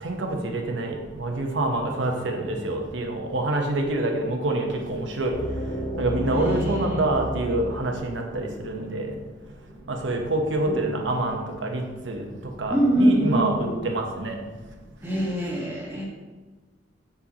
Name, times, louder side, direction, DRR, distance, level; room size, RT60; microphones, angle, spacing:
voice 1, 0.0-5.3 6.0-9.2 9.9-12.3 12.6-14.3, right 2 dB, 75° right, 2 dB, 0.9 m, -26 dB
sound 1, 5.3-9.2, equal, 50° left, 2.0 m, -32 dB
voice 2, 6.3-7.0 9.7-9.8 10.7-10.8 12.7-13.8 15.0-16.0, right 1 dB, 10° right, -4 dB, 1.5 m, -24 dB
6.1 x 5.6 x 2.9 m, 1.2 s
head